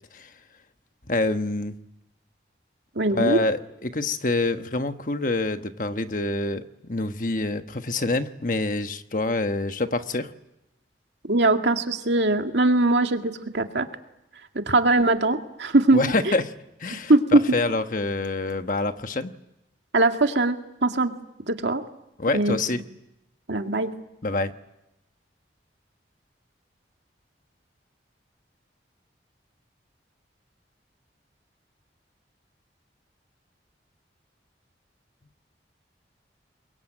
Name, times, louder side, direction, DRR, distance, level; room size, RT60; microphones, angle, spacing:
voice 1, 1.1-1.8 3.1-10.3 15.9-16.5 16.8-19.3 22.2-22.8 24.2-24.5, left 2 dB, 45° left, 8 dB, 1.3 m, -26 dB
voice 2, 3.0-3.4 11.3-13.9 14.7-16.1 17.1-17.4 19.9-20.6 20.8-21.1 21.5-21.8 22.3-22.8 23.5-23.9, right 2 dB, 80° right, 5 dB, 2.1 m, -21 dB
28.0 x 22.5 x 9.0 m, 0.88 s
head